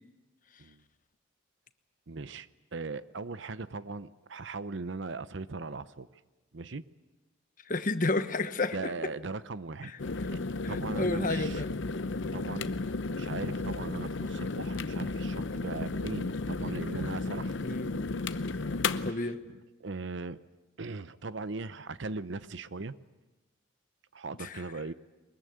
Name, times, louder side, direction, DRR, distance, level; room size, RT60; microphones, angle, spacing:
voice 1, 2.1-6.1 6.5-6.8 8.7-9.9 10.3-11.6 12.3-17.6 18.3-18.6 18.9-20.4 20.8-22.9 24.1-24.9, right 3 dB, 65° right, 15 dB, 0.8 m, -39 dB
voice 2, 7.6-8.9 9.8-9.9 10.6-11.7 17.6-17.9 19.0-19.4 24.4-24.6, left 2 dB, 40° left, 10 dB, 1.2 m, -31 dB
sound 1, 10.0-19.1, left 3 dB, 70° left, 0.8 m, -33 dB
23.0 x 21.5 x 9.4 m, 1.1 s
head